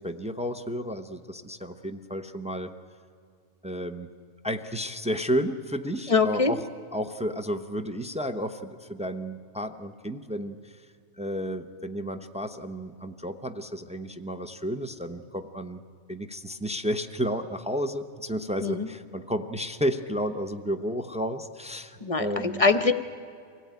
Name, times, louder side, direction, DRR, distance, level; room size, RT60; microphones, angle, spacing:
voice 1, 0.0-2.7 3.6-4.1 4.4-6.6 6.9-10.9 11.2-15.8 16.1-22.6, equal, 10° right, 6 dB, 0.4 m, -32 dB
voice 2, 6.1-6.5 18.6-18.9 22.0-23.0, left 4 dB, 35° left, 11 dB, 0.6 m, -23 dB
24.0 x 16.0 x 9.4 m, 2.3 s
omnidirectional pair, 1.5 m